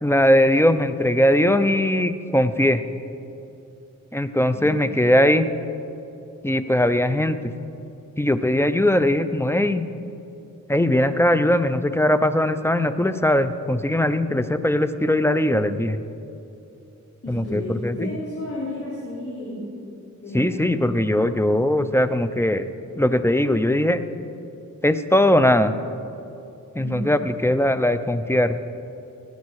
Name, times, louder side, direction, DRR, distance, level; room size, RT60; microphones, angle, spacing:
voice 1, 0.0-2.8 4.1-5.5 6.4-7.4 8.2-9.9 10.7-16.0 17.3-18.1 20.3-22.6 23.0-24.0 24.8-25.7 26.7-28.6, left 1 dB, 10° left, 11 dB, 0.7 m, -20 dB
voice 2, 17.2-19.6 20.2-20.9 26.8-27.2, left 1 dB, 45° left, -8 dB, 3.7 m, -32 dB
17.5 x 9.6 x 4.8 m, 2.8 s
cardioid pair, 50°, 31 cm